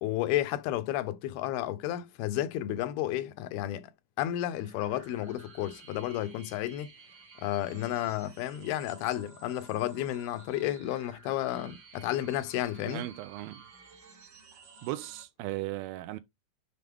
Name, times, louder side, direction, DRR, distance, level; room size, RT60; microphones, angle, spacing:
voice 1, 0.0-3.9 4.2-6.9 7.4-13.0, left 13 dB, 85° left, 2.6 m, -32 dB
sound 1, 4.6-15.2, right 4 dB, 65° right, 1.1 m, -53 dB
voice 2, 12.9-13.7 14.8-16.2, right 16 dB, 85° right, 2.4 m, -37 dB
7.2 x 3.8 x 3.5 m
omnidirectional pair, 4.3 m